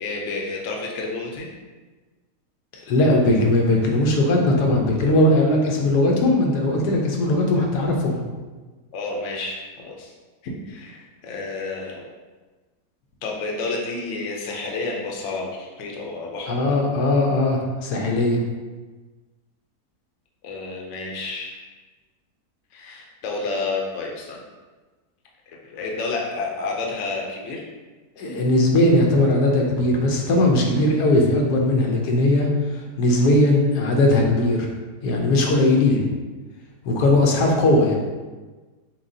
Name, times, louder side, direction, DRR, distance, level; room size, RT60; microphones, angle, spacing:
voice 1, 0.0-1.5 8.9-10.1 10.4-12.0 13.2-16.6 20.4-21.6 22.7-24.4 25.5-27.6, left 3 dB, 60° left, -1 dB, 0.9 m, -30 dB
voice 2, 2.7-8.2 16.5-18.4 28.2-34.7 35.0-36.1 36.8-38.0, left 1 dB, 85° left, 0 dB, 1.3 m, -19 dB
5.8 x 2.3 x 2.7 m, 1.3 s
omnidirectional pair, 1.7 m